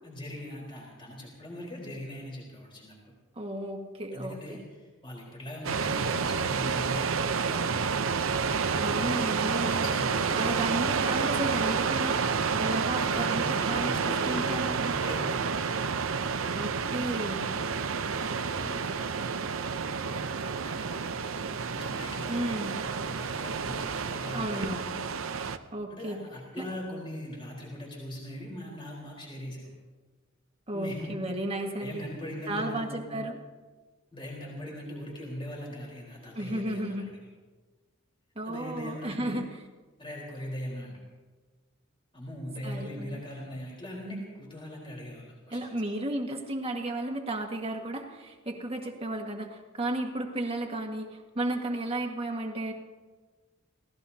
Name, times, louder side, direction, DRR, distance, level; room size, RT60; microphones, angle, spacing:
voice 1, 0.0-3.1 4.1-8.2 8.8-10.9 12.9-15.5 18.1-19.5 20.0-21.1 21.7-24.8 25.9-29.7 30.7-31.2 31.8-33.2 34.1-37.1 38.5-39.4 40.0-40.9 42.1-45.7, left 1 dB, 25° left, -2 dB, 4.2 m, -41 dB
voice 2, 3.3-4.6 8.8-9.9 10.4-15.0 16.5-17.5 22.3-22.8 24.3-24.9 25.7-26.2 26.6-26.7 30.7-32.1 32.5-33.4 36.3-37.1 38.3-39.4 42.6-43.2 45.5-52.7, right 1 dB, 30° right, 2 dB, 1.7 m, -33 dB
sound 1, 5.6-25.6, right 5 dB, 75° right, 0.7 m, -29 dB
28.5 x 17.5 x 2.8 m, 1.3 s
head